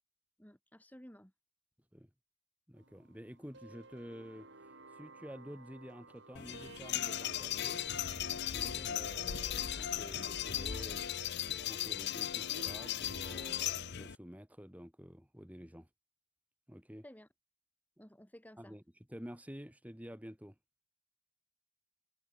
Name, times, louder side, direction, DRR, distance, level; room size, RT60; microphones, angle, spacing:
voice 1, 0.4-1.3 17.0-17.3 18.0-18.8, equal, 10° left, 2.3 m, -55 dB
voice 2, 2.7-4.5 4.9-7.8 8.4-11.0 11.6-15.9 16.7-17.0 18.6-18.8 19.1-20.5, equal, 5° right, 4.5 m, -50 dB
sound 1, 2.7-13.9, right 2 dB, 60° right, 6.7 m, -55 dB
sound 2, 6.3-14.1, left 10 dB, 55° left, 0.7 m, -37 dB
sound 3, 7.2-10.3, equal, 30° left, 6.9 m, -61 dB
head